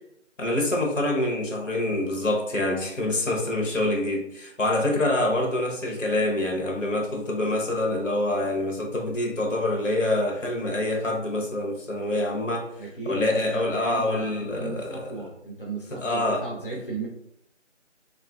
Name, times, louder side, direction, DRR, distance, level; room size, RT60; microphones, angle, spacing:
voice 1, 0.4-12.7 13.1-15.1 15.9-16.5, left 1 dB, 85° left, 0.9 m, -26 dB
voice 2, 12.8-17.1, right 3 dB, 45° left, 0.5 m, -36 dB
2.6 x 2.4 x 2.3 m
figure-of-eight pair, 175°, 37 cm